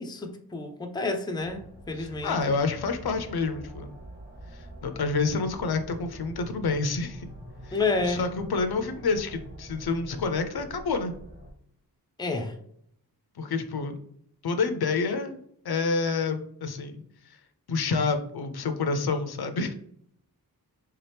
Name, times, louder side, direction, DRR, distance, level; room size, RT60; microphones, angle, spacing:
voice 1, 0.0-2.4 7.7-8.3 12.2-12.5, left 3 dB, 10° left, 5 dB, 0.4 m, -29 dB
sound 1, 1.4-11.5, equal, 25° right, 1.1 m, -45 dB
voice 2, 2.0-3.9 4.5-7.3 7.6-7.8 8.1-11.1 13.4-14.0 14.4-15.4 15.6-17.4 17.7-19.7, left 4 dB, 75° left, 8 dB, 0.6 m, -28 dB
3.4 x 2.9 x 3.3 m, 0.67 s
wide cardioid pair, 100°, 38 cm